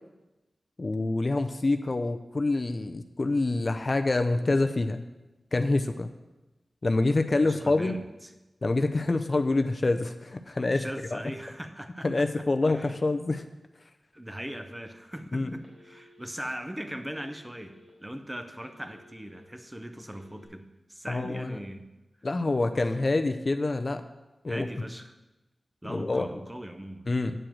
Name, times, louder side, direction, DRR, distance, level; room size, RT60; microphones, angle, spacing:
voice 1, 0.8-5.0 5.5-6.1 6.8-8.0 8.6-10.8 11.1-11.2 12.0-13.4 15.3-15.5 21.1-21.6 22.2-24.0 24.4-24.7 25.9-26.3 27.1-27.3, left 2 dB, 40° left, 8 dB, 0.5 m, -26 dB
voice 2, 7.4-8.3 10.7-12.9 14.1-21.9 22.8-23.1 24.5-25.2 25.8-27.1, equal, 10° right, 7 dB, 0.7 m, -40 dB
Telephone, 14.5-15.2 15.6-16.4 17.1-17.9 18.3-19.4 20.0-20.5, left 1 dB, 70° right, 3.9 m, -56 dB
8.7 x 4.9 x 7.7 m, 1.1 s
wide cardioid pair, 110°, 0 cm